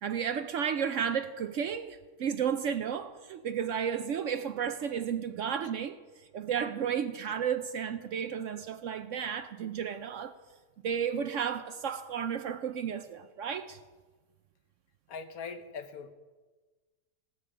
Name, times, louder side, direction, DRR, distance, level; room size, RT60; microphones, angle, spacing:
voice 1, 0.0-6.0 6.3-10.3 10.8-13.8, right 8 dB, 65° right, 0.8 m, -33 dB
voice 2, 15.1-16.1, left 5 dB, 65° left, 1.4 m, -41 dB
16.5 x 12.5 x 4.9 m
omnidirectional pair, 1.7 m